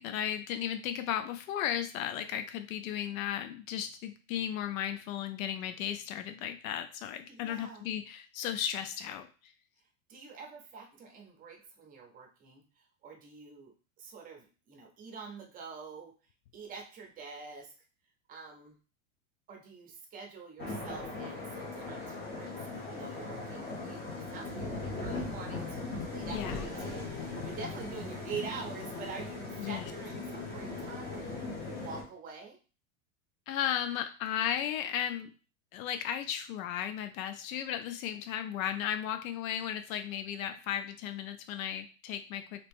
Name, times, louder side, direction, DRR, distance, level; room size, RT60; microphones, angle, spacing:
voice 1, 0.0-9.5 26.3-26.6 29.6-29.9 33.5-35.3 35.7-42.7, left 10 dB, 85° left, 8 dB, 0.5 m, -35 dB
voice 2, 7.3-7.8 10.1-16.1 16.5-17.7 18.3-18.8 19.5-31.4 31.8-32.6, right 5 dB, 20° right, 1 dB, 0.6 m, -46 dB
sound 1, 20.6-32.0, left 3 dB, 25° left, 0.9 m, -39 dB
2.9 x 2.9 x 3.4 m, 0.35 s
supercardioid pair, 150°, 40 cm